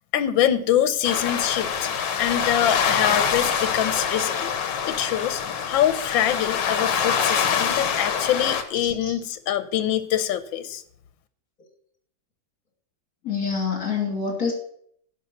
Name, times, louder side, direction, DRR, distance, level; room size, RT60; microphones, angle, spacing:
voice 1, 0.1-10.8, left 10 dB, 85° left, 12 dB, 1.5 m, -24 dB
sound 1, 1.0-8.6, left 7 dB, 70° left, 1.7 m, -25 dB
voice 2, 13.2-14.5, left 5 dB, 50° left, 0 dB, 3.2 m, -26 dB
11.0 x 5.4 x 8.1 m, 0.66 s
omnidirectional pair, 2.0 m